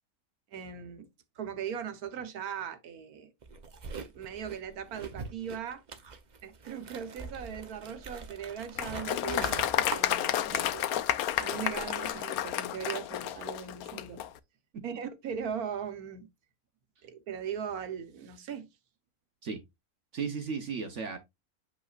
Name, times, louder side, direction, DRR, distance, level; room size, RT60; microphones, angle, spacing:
voice 1, 0.5-1.1 1.4-3.3 3.9-5.8 6.4-14.2 14.8-16.3 17.0-18.7, right 8 dB, 80° right, 1.5 m, -39 dB
sound 1, 3.4-10.7 11.0-12.2, right 4 dB, 40° right, 0.7 m, -44 dB
Applause, 8.8-14.3, left 12 dB, 80° left, 1.1 m, -31 dB
voice 2, 20.1-21.2, right 5 dB, 55° right, 1.3 m, -35 dB
8.2 x 5.4 x 2.4 m
omnidirectional pair, 1.6 m